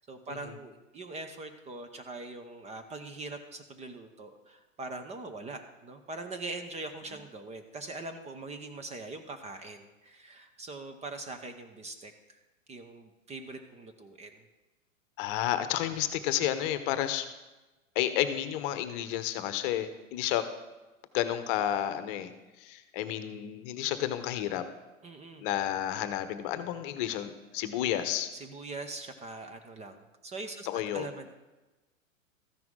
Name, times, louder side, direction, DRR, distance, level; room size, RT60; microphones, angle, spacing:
voice 1, 0.1-12.4 12.7-14.4 25.0-25.4 28.3-31.3, right 2 dB, 15° right, 7 dB, 0.8 m, -42 dB
voice 2, 15.2-17.2 17.9-20.4 21.1-22.3 22.6-24.6 25.4-28.3 30.7-31.1, left 12 dB, 40° left, 11 dB, 1.0 m, -31 dB
14.0 x 10.5 x 3.8 m, 1.1 s
hypercardioid pair, 105°, 40 cm